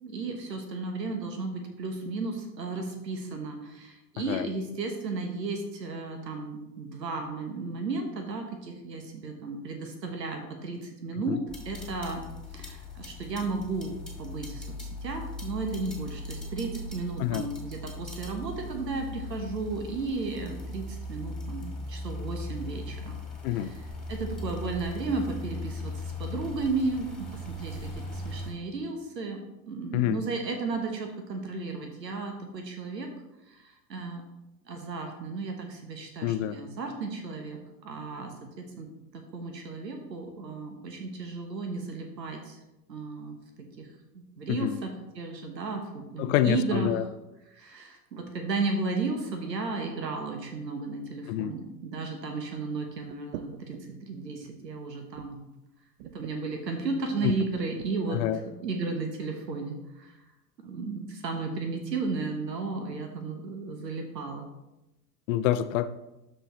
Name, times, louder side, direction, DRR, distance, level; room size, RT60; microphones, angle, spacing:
voice 1, 0.0-12.3 12.5-23.2 23.5-23.8 24.1-33.1 33.5-34.2 34.6-42.6 42.9-43.9 44.1-47.1 47.5-55.4 56.0-60.2 60.6-64.5, right 3 dB, 85° right, 4 dB, 1.2 m, -34 dB
sound 1, 11.5-28.5, left 2 dB, ahead, 2.1 m, -39 dB
voice 2, 36.2-36.6 44.5-44.8 46.2-47.0 51.3-51.5 57.2-57.3 58.1-58.4 65.3-65.9, left 12 dB, 55° left, 13 dB, 0.6 m, -27 dB
Splitting Logs, 53.1-54.0 54.4-54.6 55.1-55.6 56.0-56.4 57.2-57.9, right 12 dB, 45° right, 0.4 m, -44 dB
12.5 x 4.5 x 3.1 m, 0.96 s
hypercardioid pair, 85°, 49 cm